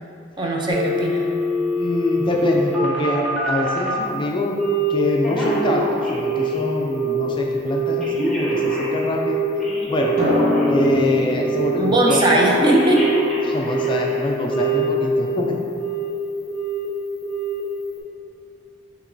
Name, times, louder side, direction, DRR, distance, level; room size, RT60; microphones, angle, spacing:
voice 1, 0.4-1.3 11.8-13.1, right 1 dB, 25° right, -2 dB, 0.5 m, -19 dB
Telephone, 0.7-4.0 4.6-5.0 5.2-6.6 6.9-7.3 7.7-11.0 11.4-11.8 12.1-14.1 14.5-15.4 15.7-16.1 16.5-16.9 17.2-17.6 18.0-18.1, right 2 dB, 5° left, 1.0 m, -23 dB
voice 2, 1.8-4.6 4.9-9.4 9.9-10.2 10.6-12.2 13.4-15.6, left 1 dB, 25° left, -1 dB, 0.3 m, -24 dB
Drum, 10.2-13.5, left 1 dB, 50° right, 1.0 m, -24 dB
6.6 x 2.9 x 2.6 m, 2.4 s
head